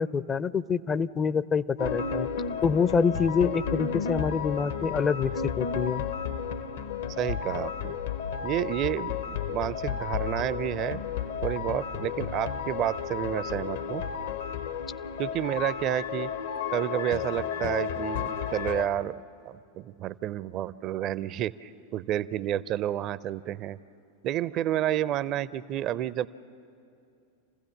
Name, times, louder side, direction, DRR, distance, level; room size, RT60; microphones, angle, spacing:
voice 1, 0.0-2.3 2.6-6.0, left 5 dB, 20° left, 18 dB, 0.5 m, -26 dB
sound 1, 1.8-18.9, left 7 dB, 60° left, 0.8 m, -32 dB
voice 2, 7.1-8.0 8.4-11.0 11.4-14.0 15.2-16.3 16.7-23.8 24.2-26.3, right 12 dB, 35° right, 19 dB, 0.5 m, -30 dB
28.0 x 15.5 x 7.3 m, 2.5 s
figure-of-eight pair, 90°, 0 cm